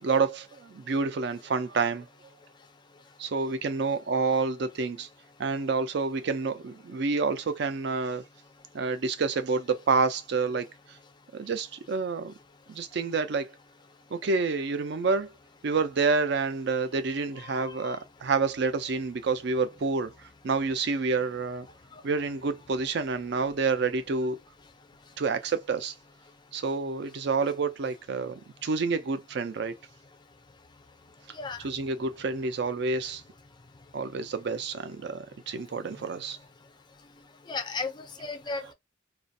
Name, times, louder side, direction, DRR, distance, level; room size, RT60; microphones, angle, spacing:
voice 1, 0.0-2.1 3.2-5.1 5.4-8.2 8.7-10.7 11.3-12.3 12.7-13.5 14.1-15.3 15.6-20.1 20.4-21.7 22.0-24.4 25.2-25.9 26.5-29.7 31.6-33.2 33.9-36.4 38.6-38.7, right 4 dB, 55° right, 0.4 m, -28 dB
voice 2, 17.4-18.0 31.4-31.6 37.5-38.7, left 4 dB, 20° left, 0.4 m, -35 dB
2.4 x 2.0 x 2.6 m
head